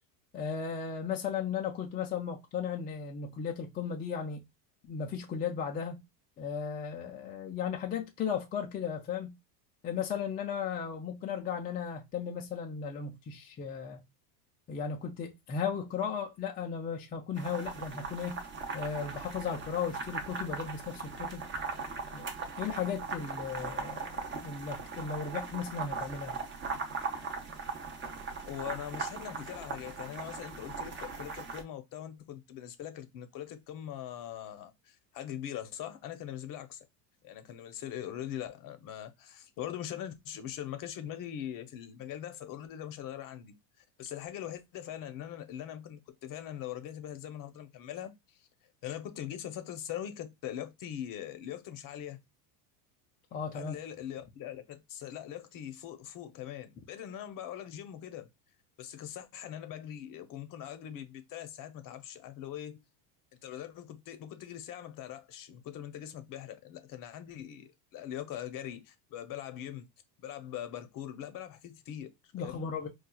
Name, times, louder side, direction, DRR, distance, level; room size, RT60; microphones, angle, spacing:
voice 1, 0.3-4.4 4.8-6.0 6.4-9.3 9.8-14.0 14.7-18.4 18.7-21.5 22.1-22.3 22.6-26.4 53.3-53.8 72.3-72.9, left 7 dB, 20° left, 0.3 m, -36 dB
sound 1, 17.4-31.6, right 4 dB, 25° right, 0.7 m, -39 dB
voice 2, 28.4-36.9 37.2-48.5 48.8-52.2 53.5-58.3 58.8-62.8 63.4-69.9 70.2-72.6, left 10 dB, 45° left, 0.7 m, -42 dB
4.3 x 2.4 x 2.2 m
supercardioid pair, 115°, 48 cm